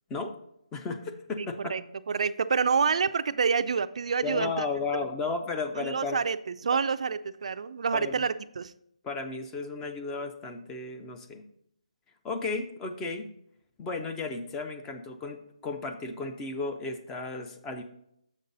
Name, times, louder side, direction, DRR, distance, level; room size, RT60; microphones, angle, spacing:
voice 1, 0.7-1.7 4.2-6.2 7.9-8.3 9.0-11.4 12.2-13.3 13.8-17.8, left 3 dB, 10° left, 6 dB, 0.4 m, -34 dB
voice 2, 2.1-4.6 5.8-8.7, right 5 dB, 60° right, 12 dB, 0.3 m, -27 dB
7.2 x 5.3 x 3.9 m, 0.75 s
hypercardioid pair, 160°, 4 cm